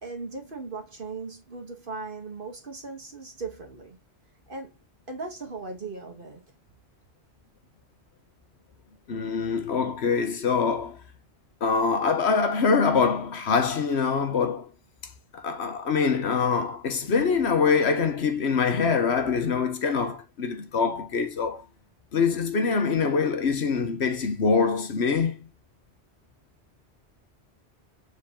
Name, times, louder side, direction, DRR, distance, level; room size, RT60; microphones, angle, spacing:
voice 1, 0.0-4.0 4.5-4.8 5.1-6.4, right 4 dB, 50° right, 1.7 m, -38 dB
voice 2, 9.1-11.0 11.6-14.7 15.3-21.6 22.1-25.5, left 5 dB, 75° left, 1.4 m, -24 dB
7.1 x 4.2 x 3.7 m
omnidirectional pair, 1.1 m